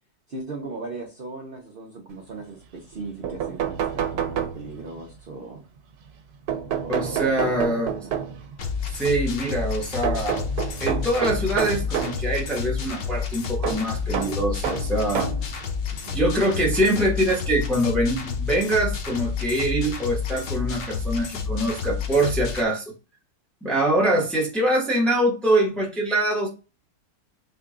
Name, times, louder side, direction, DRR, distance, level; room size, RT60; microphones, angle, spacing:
voice 1, 0.3-5.6 6.8-8.2 15.9-16.3 24.1-24.3, right 3 dB, 50° right, 0.7 m, -38 dB
Knocking on Window, 2.9-3.0 3.2-5.0 6.5-8.5 10.0-12.2 13.6-15.5 16.4-16.5 17.8-17.9 18.2-18.3, right 8 dB, 90° right, 1.2 m, -29 dB
voice 2, 6.9-8.0 8.9-10.4 10.8-15.3 16.1-22.8 23.6-26.5, right 1 dB, ahead, 0.8 m, -24 dB
sound 1, 8.6-22.6, left 6 dB, 70° left, 0.5 m, -30 dB
3.7 x 2.3 x 3.6 m
omnidirectional pair, 1.6 m